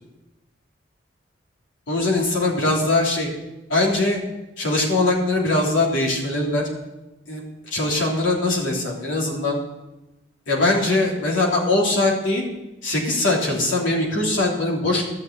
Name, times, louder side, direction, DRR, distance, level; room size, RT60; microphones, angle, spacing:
voice 1, 1.9-3.3 3.7-4.2 4.6-6.7 7.3-9.6 10.5-12.4 12.8-15.1, left 2 dB, 90° left, -2 dB, 3.3 m, -21 dB
13.0 x 6.7 x 8.3 m, 0.98 s
head